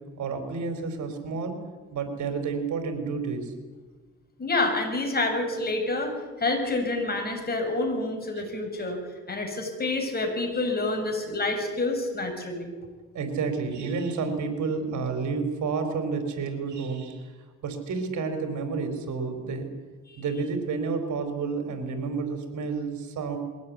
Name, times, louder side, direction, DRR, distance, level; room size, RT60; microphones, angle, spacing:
voice 1, 0.2-1.6 1.9-3.5 8.4-8.5 13.1-17.3 17.6-19.7 20.2-23.4, right 4 dB, 70° right, 7 dB, 4.3 m, -30 dB
voice 2, 4.4-9.0 9.3-12.7 20.1-20.3, left 2 dB, 30° left, 3 dB, 7.1 m, -28 dB
22.0 x 17.5 x 9.8 m, 1.4 s
cardioid pair, 90°, 30 cm